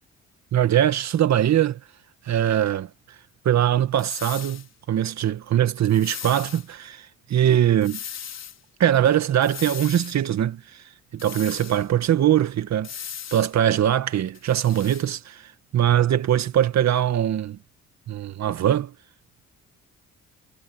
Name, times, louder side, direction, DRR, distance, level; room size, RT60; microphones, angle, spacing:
voice 1, 0.5-1.8 2.3-2.9 3.5-8.0 8.8-10.8 11.1-12.9 13.3-17.6 18.1-18.9, right 11 dB, 60° right, 1.9 m, -22 dB
sound 1, 4.0-4.7 5.9-6.7 7.8-8.6 9.4-10.2 11.2-11.9 12.8-13.5 14.3-15.1, left 8 dB, 60° left, 5.3 m, -38 dB
cardioid pair, 90°, 30 cm